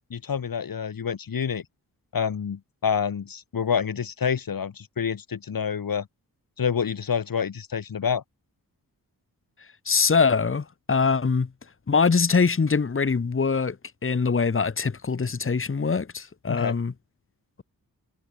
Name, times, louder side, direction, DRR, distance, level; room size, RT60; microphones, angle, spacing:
voice 1, 0.1-1.6 2.1-6.1 6.6-8.2 16.5-16.8, left 7 dB, 70° left, 5.0 m, -27 dB
voice 2, 9.9-11.5 11.9-13.8 14.0-16.9, left 5 dB, 35° left, 1.8 m, -23 dB
cardioid pair, 80°, 36 cm